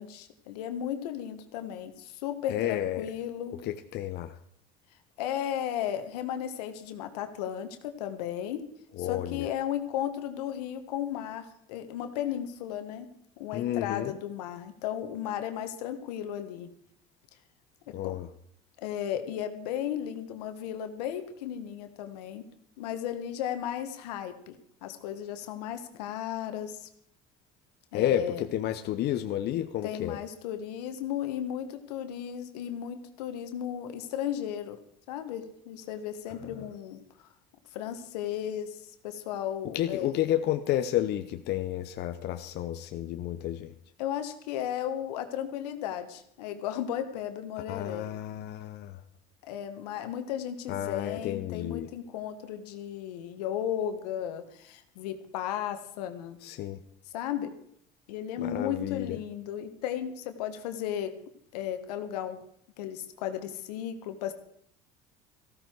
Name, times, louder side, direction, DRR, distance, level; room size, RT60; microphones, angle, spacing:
voice 1, 0.0-3.6 5.2-8.6 9.0-13.1 13.4-16.7 17.9-18.1 18.8-22.5 22.8-26.9 27.9-28.4 29.8-34.8 35.1-37.0 37.7-40.1 44.0-48.1 49.5-56.4 57.1-57.5 58.1-61.1 61.5-62.4 62.8-64.3, left 10 dB, 85° left, 8 dB, 1.7 m, -35 dB
voice 2, 2.5-3.1 3.6-4.3 9.0-9.5 13.5-14.1 17.9-18.3 27.9-30.2 39.7-43.7 47.7-49.0 50.7-51.9 56.4-56.8 58.4-59.2, left 12 dB, 55° left, 8 dB, 0.9 m, -31 dB
15.0 x 13.5 x 4.7 m, 0.69 s
supercardioid pair, 85°, 20 cm